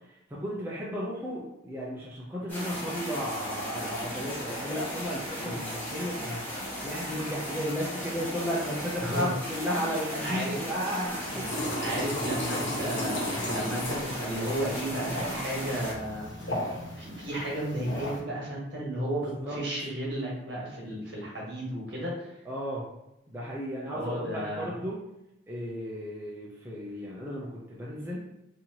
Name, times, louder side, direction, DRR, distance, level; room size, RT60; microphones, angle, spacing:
voice 1, 0.1-11.8 19.4-19.6 22.5-22.8 23.3-25.0 25.5-28.3, equal, 10° right, -6 dB, 0.5 m, -34 dB
sound 1, 2.5-15.9, equal, 10° left, 1.4 m, -36 dB
voice 2, 9.0-9.3 10.2-10.6 11.8-16.3 17.0-22.4 23.8-24.8, right 1 dB, 55° right, -4 dB, 1.3 m, -33 dB
sound 2, 11.1-18.2, left 1 dB, 60° left, 1.2 m, -35 dB
4.2 x 2.7 x 2.8 m, 0.86 s
head